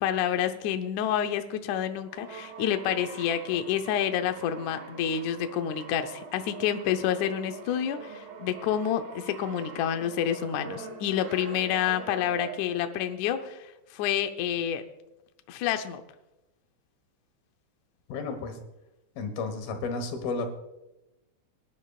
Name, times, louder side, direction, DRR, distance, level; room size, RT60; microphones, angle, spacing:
voice 1, 0.0-14.8 15.5-16.0, left 9 dB, 70° left, 7 dB, 1.9 m, -28 dB
Brass instrument, 2.1-12.9, right 5 dB, 75° right, 3.4 m, -44 dB
voice 2, 18.1-18.5 19.2-20.5, left 3 dB, 90° left, 6 dB, 3.4 m, -32 dB
24.5 x 10.5 x 2.4 m, 0.96 s
omnidirectional pair, 4.1 m